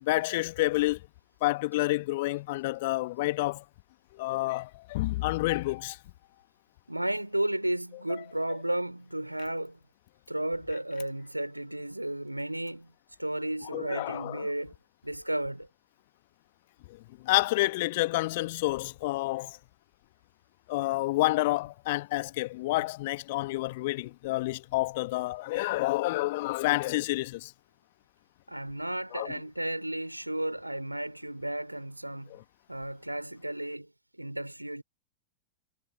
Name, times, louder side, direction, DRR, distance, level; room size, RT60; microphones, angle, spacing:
voice 1, 0.0-1.0 1.4-3.6 4.1-6.0 8.1-8.2 13.7-14.5 16.9-19.6 20.7-27.5 29.1-29.3 32.3-32.4, left 20 dB, 50° left, 1.3 m, -29 dB
voice 2, 6.9-9.8 10.3-12.9 13.2-14.7 15.0-15.7 28.5-32.3 32.7-34.8, right 1 dB, 85° right, 3.4 m, -33 dB
figure-of-eight pair, 90°, 0 cm